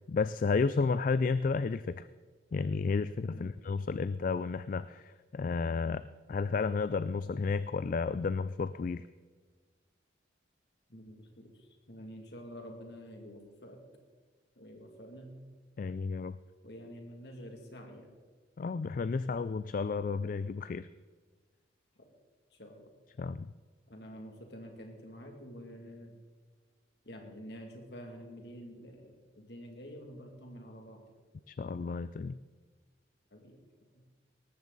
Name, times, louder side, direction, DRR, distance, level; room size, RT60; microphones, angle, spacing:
voice 1, 0.1-2.0 2.5-6.0 6.3-9.0 15.8-16.4 18.6-20.9 23.2-23.5 31.5-32.3, left 4 dB, 45° left, 15 dB, 0.3 m, -32 dB
voice 2, 10.9-13.8 14.6-15.4 16.6-18.1 22.0-22.1 22.5-22.9 23.9-26.2 27.0-31.0 33.3-33.6 33.9-34.0, equal, 60° left, 3 dB, 2.4 m, -48 dB
18.5 x 14.0 x 4.0 m, 1.5 s
head